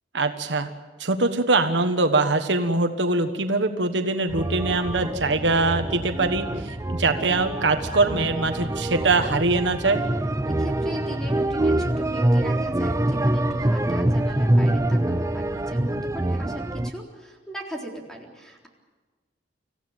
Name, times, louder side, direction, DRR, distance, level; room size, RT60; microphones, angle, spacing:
voice 1, 0.1-0.7 1.0-10.0, right 3 dB, 70° right, 7 dB, 1.4 m, -23 dB
sound 1, 4.3-16.9, right 1 dB, 15° right, 0.6 m, -25 dB
voice 2, 10.6-18.7, equal, 5° left, 0 dB, 3.9 m, -38 dB
26.0 x 15.5 x 9.1 m, 1.3 s
head